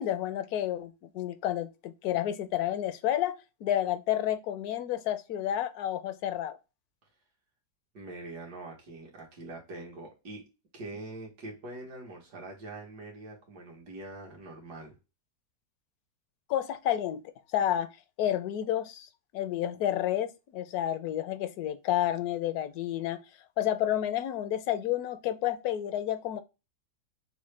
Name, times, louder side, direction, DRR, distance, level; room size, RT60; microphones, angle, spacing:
voice 1, 0.0-6.6 16.5-17.2 17.5-17.9 18.2-19.1 19.3-23.2 23.6-26.4, left 11 dB, 75° left, 1.0 m, -30 dB
voice 2, 7.9-10.5 10.7-15.0, right 2 dB, 85° right, 1.9 m, -43 dB
6.2 x 2.1 x 3.2 m
omnidirectional pair, 1.7 m